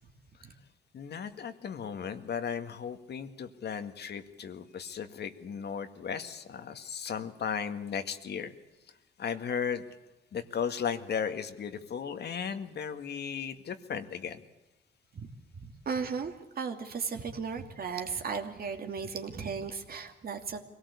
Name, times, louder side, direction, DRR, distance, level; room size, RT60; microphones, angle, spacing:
voice 1, 0.9-8.5 9.2-9.8 10.3-14.4, left 7 dB, 55° left, 8 dB, 2.0 m, -36 dB
voice 2, 15.6-20.6, right 5 dB, 50° right, 5 dB, 2.6 m, -36 dB
23.5 x 18.0 x 8.4 m, 1.0 s
cardioid pair, 90°, 20 cm